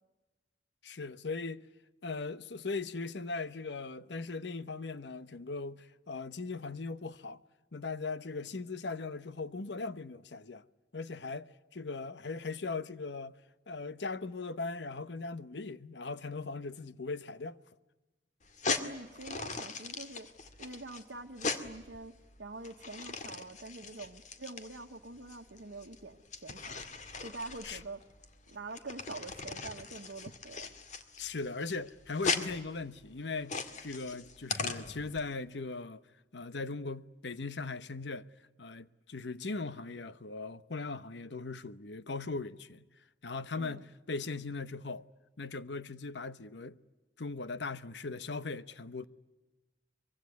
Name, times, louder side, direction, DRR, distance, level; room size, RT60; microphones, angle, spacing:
voice 1, 0.8-1.6 2.0-7.4 7.7-10.6 10.9-13.4 13.7-17.6 27.6-27.8 31.2-36.0 36.3-38.3 38.6-42.8 43.2-45.0 45.4-46.8 47.2-49.1, left 3 dB, 70° left, 1.0 m, -39 dB
sound 1, 18.4-35.2, left 4 dB, 45° left, 2.1 m, -39 dB
voice 2, 18.8-20.3 20.6-22.1 22.4-26.8 27.2-28.0 28.5-30.7 43.6-43.8, right 2 dB, 75° right, 1.3 m, -45 dB
24.5 x 23.5 x 9.4 m
head